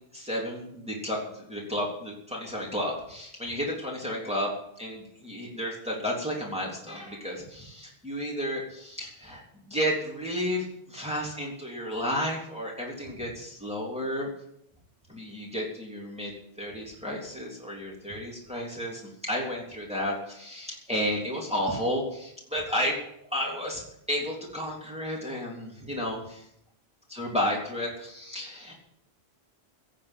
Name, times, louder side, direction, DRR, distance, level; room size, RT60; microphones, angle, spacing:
voice 1, 0.1-4.5 4.8-14.3 15.1-16.3 16.6-19.0 19.3-23.0 23.3-26.4 27.1-28.7, equal, 5° right, -3 dB, 3.4 m, -32 dB
17.0 x 7.4 x 8.2 m, 0.75 s
omnidirectional pair, 1.1 m